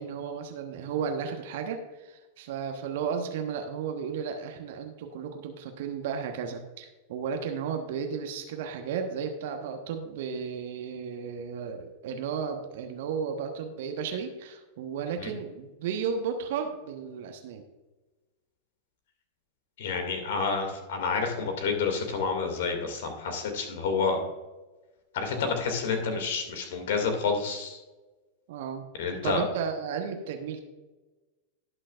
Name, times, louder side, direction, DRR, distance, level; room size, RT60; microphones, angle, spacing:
voice 1, 0.0-17.6 28.5-28.8 29.2-30.6, right 6 dB, 55° right, 5 dB, 1.1 m, -34 dB
voice 2, 19.8-24.2 25.1-27.8 29.0-29.5, left 5 dB, 55° left, 5 dB, 2.3 m, -29 dB
19.0 x 6.5 x 2.5 m, 1.1 s
figure-of-eight pair, 90°, 0 cm